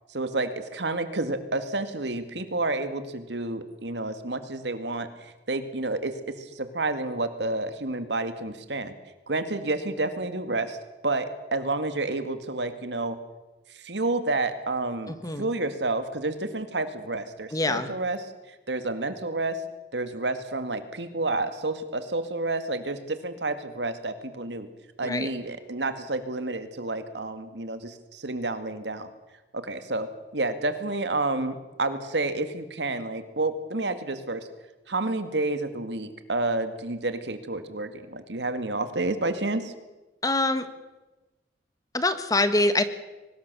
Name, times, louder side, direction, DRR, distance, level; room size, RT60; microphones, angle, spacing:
voice 1, 0.1-8.9 9.3-10.8 11.0-13.2 13.7-19.6 19.9-24.7 25.0-29.1 29.5-30.1 30.3-34.5 34.9-39.7, right 2 dB, 80° right, 10 dB, 2.1 m, -30 dB
voice 2, 15.1-15.5 17.5-17.9 25.0-25.3 40.2-40.7 41.9-42.8, left 2 dB, 20° left, 11 dB, 1.6 m, -24 dB
23.5 x 19.5 x 6.9 m, 1.1 s
head